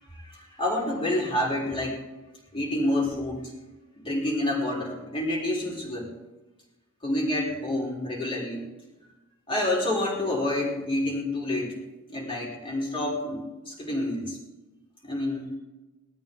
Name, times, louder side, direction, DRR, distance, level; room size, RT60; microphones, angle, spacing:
voice 1, 0.1-2.0 2.5-3.5 4.0-6.1 7.0-8.7 9.5-11.8 12.1-14.4 15.0-15.5, left 1 dB, 25° left, -3 dB, 4.1 m, -28 dB
19.5 x 13.0 x 3.9 m, 1.1 s
head